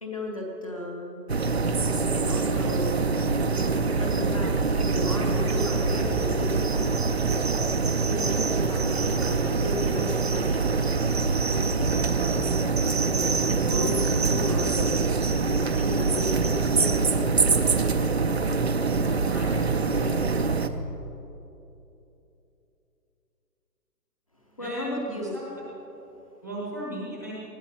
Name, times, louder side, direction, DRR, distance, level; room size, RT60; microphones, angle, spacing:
voice 1, 0.0-1.2 2.1-3.0 4.0-7.0 8.0-10.8 13.0-15.0 15.7-17.1 24.6-25.4 26.1-26.2, left 1 dB, 20° left, 0 dB, 0.8 m, -34 dB
sound 1, 1.3-20.7, right 4 dB, 40° right, 0.5 m, -24 dB
voice 2, 11.8-12.4 13.7-13.9 19.2-19.5 24.6-25.5 26.4-27.3, right 1 dB, 10° right, -5 dB, 0.8 m, -36 dB
20.0 x 14.0 x 4.1 m, 2.9 s
hypercardioid pair, 175°, 49 cm